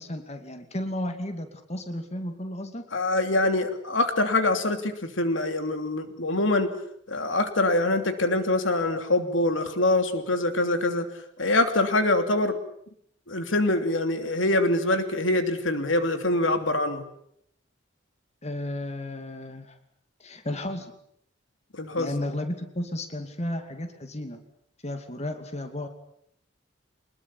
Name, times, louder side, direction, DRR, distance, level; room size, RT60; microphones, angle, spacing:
voice 1, 0.0-2.9 18.4-19.8 20.2-20.9 22.0-24.4 24.8-25.9, left 1 dB, 35° left, 7 dB, 2.6 m, -33 dB
voice 2, 2.9-6.7 7.1-11.0 11.4-12.6 13.3-17.0 21.8-22.1, left 2 dB, 80° left, 8 dB, 3.0 m, -24 dB
25.0 x 21.0 x 8.6 m, 0.70 s
head